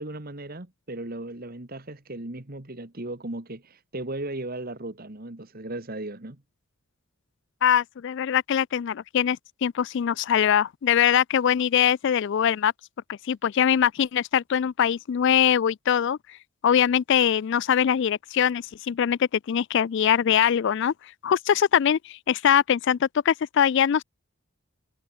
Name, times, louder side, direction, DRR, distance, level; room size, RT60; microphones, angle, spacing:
voice 1, 0.0-6.4, right 2 dB, 45° right, 1.8 m, -36 dB
voice 2, 7.6-12.7 13.1-16.2 16.6-20.9 21.2-24.0, left 9 dB, 55° left, 0.3 m, -22 dB
head